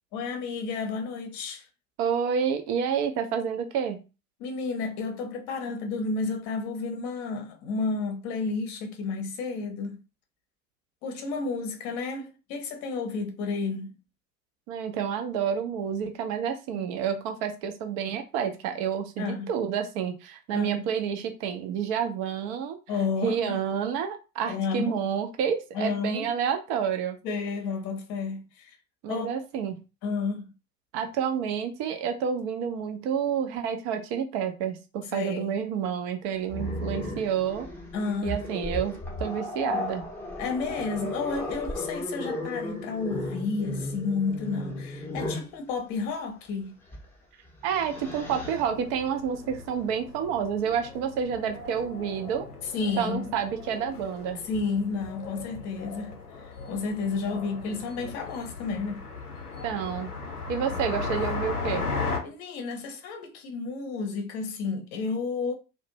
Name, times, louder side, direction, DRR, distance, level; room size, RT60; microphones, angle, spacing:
voice 1, 0.1-1.7 4.4-10.0 11.0-13.9 16.7-16.8 19.2-19.5 20.5-20.9 22.9-23.6 24.5-25.0 25.7-26.3 27.2-28.8 29.1-29.3 30.0-30.5 35.1-35.6 37.9-38.4 40.4-46.7 52.7-53.4 54.4-59.0 62.2-65.5, left 4 dB, 40° left, 0.7 m, -31 dB
voice 2, 2.0-4.0 14.7-22.8 23.2-27.2 29.0-29.8 30.9-37.7 38.2-40.1 47.6-52.4 53.0-54.4 59.6-60.1 60.5-61.8, right 7 dB, 40° right, 0.5 m, -29 dB
Growling, 36.5-45.5 46.9-47.1 47.5-48.6, left 1 dB, 5° left, 0.7 m, -35 dB
sound 1, 47.9-62.2, left 4 dB, 90° left, 0.6 m, -37 dB
2.4 x 2.1 x 2.8 m
figure-of-eight pair, 70°, 44 cm